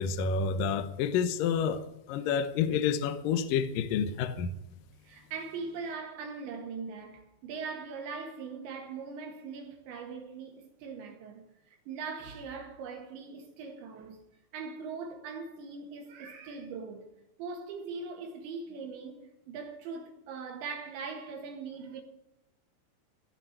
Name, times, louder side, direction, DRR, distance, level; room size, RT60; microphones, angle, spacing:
voice 1, 0.0-4.5, left 6 dB, 75° left, 2.1 m, -29 dB
voice 2, 5.0-14.2 14.5-17.1 17.4-22.0, right 5 dB, 80° right, 4.2 m, -41 dB
16.0 x 7.0 x 9.2 m
omnidirectional pair, 5.2 m